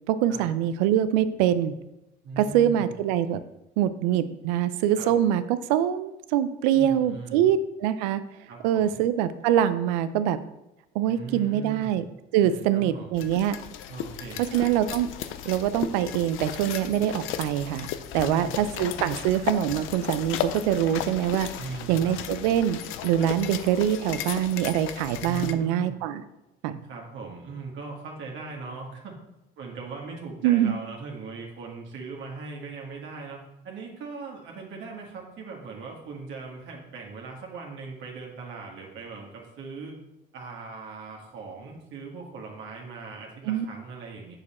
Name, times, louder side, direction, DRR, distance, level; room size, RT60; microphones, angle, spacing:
voice 1, 0.1-1.7 2.4-3.4 3.8-8.2 8.6-10.4 10.9-12.0 12.3-13.6 14.5-15.1 15.4-17.9 18.1-21.5 21.9-26.2 26.6-26.8 30.4-30.7 43.5-43.6, right 10 dB, 90° right, 13 dB, 0.5 m, -24 dB
voice 2, 2.2-2.9 5.0-5.1 6.7-7.4 8.5-9.0 11.1-12.0 12.4-13.2 13.9-14.7 18.2-18.6 21.6-22.2 25.2-26.0 26.8-29.1 29.6-40.0 40.3-44.4, right 4 dB, 65° right, -1 dB, 1.7 m, -40 dB
sound 1, 13.1-25.5, left 10 dB, 75° left, 0.6 m, -35 dB
7.3 x 6.7 x 4.3 m, 0.91 s
supercardioid pair, 80°, 21 cm